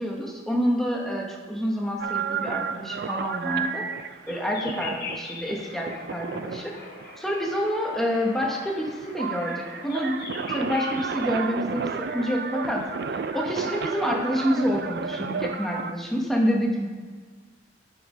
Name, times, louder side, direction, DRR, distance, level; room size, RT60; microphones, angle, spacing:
voice 1, 0.0-3.8 4.3-6.7 7.2-10.2 10.5-12.8 13.3-16.9, equal, ahead, -1 dB, 1.0 m, -27 dB
sound 1, 2.0-15.9, right 6 dB, 60° right, 0.3 m, -33 dB
sound 2, 4.3-14.0, left 3 dB, 55° left, 1.3 m, -42 dB
7.8 x 5.9 x 5.0 m, 1.5 s
head